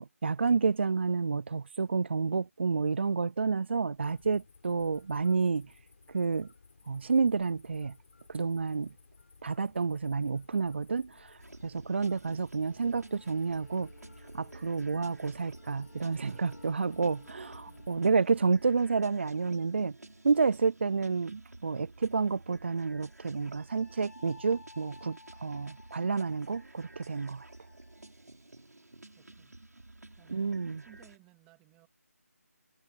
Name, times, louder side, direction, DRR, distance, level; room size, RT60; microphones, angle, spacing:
voice 1, 0.0-5.6 6.1-6.5 6.9-7.9 8.3-8.9 9.4-13.9 14.3-19.9 20.2-27.5 30.3-30.8, right 4 dB, 45° right, 0.4 m, -30 dB
sound 1, 3.9-18.0, left 4 dB, 50° left, 6.8 m, -59 dB
voice 2, 5.4-5.7 25.0-25.1 29.2-29.6 30.2-31.9, right 21 dB, 10° right, 2.9 m, -62 dB
sound 2, 11.4-31.2, right 2 dB, 90° right, 6.8 m, -52 dB
sound 3, 12.9-20.9 22.8-28.1, left 2 dB, 85° left, 2.2 m, -57 dB
figure-of-eight pair, 165°, 9 cm